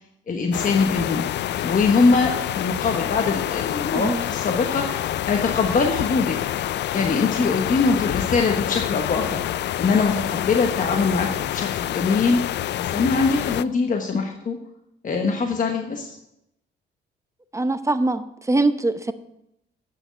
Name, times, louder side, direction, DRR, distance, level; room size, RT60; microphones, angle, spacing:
voice 1, 0.3-1.2 1.6-6.4 6.9-9.4 9.8-12.4 12.8-14.6 15.0-16.2, left 4 dB, 40° left, 3 dB, 1.2 m, -22 dB
sound 1, 0.5-13.6, left 12 dB, 60° left, 0.4 m, -27 dB
voice 2, 17.5-19.1, right 2 dB, 15° right, 10 dB, 0.8 m, -22 dB
8.9 x 6.2 x 8.2 m, 0.84 s
cardioid pair, 90°, 20 cm